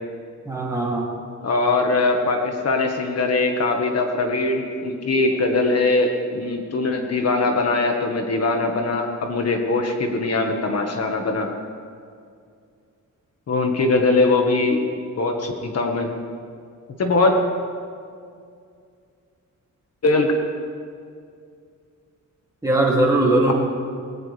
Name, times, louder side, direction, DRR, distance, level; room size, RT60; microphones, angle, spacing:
voice 1, 0.4-1.1 5.1-5.6 22.6-23.5, right 2 dB, 10° right, -4 dB, 2.8 m, -20 dB
voice 2, 1.4-11.5 13.5-16.1 17.0-17.4 20.0-20.3, left 3 dB, 55° left, 3 dB, 1.5 m, -21 dB
20.0 x 17.5 x 3.4 m, 2.3 s
wide cardioid pair, 165°, 31 cm